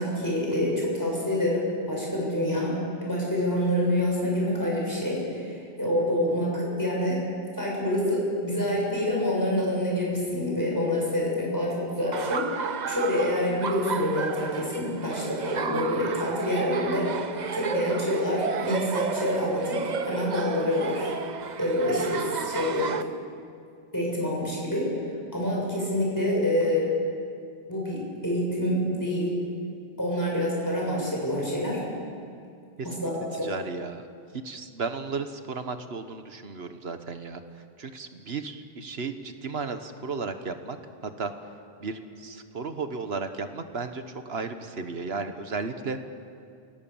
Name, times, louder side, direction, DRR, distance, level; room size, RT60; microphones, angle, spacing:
voice 1, 0.0-2.7 3.0-7.2 7.6-21.1 21.6-22.9 23.9-24.9 25.3-26.9 27.7-29.3 30.0-31.8 32.8-33.1 33.4-33.5, left 1 dB, 20° left, -4 dB, 7.1 m, -27 dB
Laughter, 12.1-23.0, right 6 dB, 50° right, 0.9 m, -32 dB
voice 2, 32.8-34.1 34.3-37.4 37.8-40.8 41.0-41.3 41.8-46.0, right 4 dB, 80° right, 8 dB, 1.6 m, -34 dB
28.5 x 17.5 x 7.2 m, 2.4 s
omnidirectional pair, 1.0 m